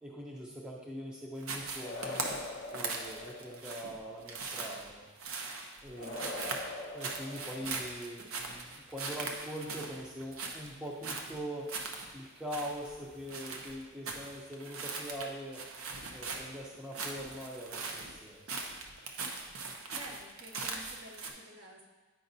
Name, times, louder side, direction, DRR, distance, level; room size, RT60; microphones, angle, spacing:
voice 1, 0.0-2.3 2.7-5.1 5.8-6.5 6.9-11.7 12.1-15.6 16.1-18.6, equal, 5° right, -3 dB, 0.6 m, -42 dB
sound 1, 1.4-21.3, right 4 dB, 75° right, 0.7 m, -40 dB
sound 2, 1.8-3.9 6.0-8.0, left 2 dB, 55° left, 0.5 m, -43 dB
voice 2, 6.0-6.7 19.9-21.9, right 1 dB, 55° right, -2 dB, 1.3 m, -50 dB
9.0 x 5.1 x 2.6 m, 1.3 s
head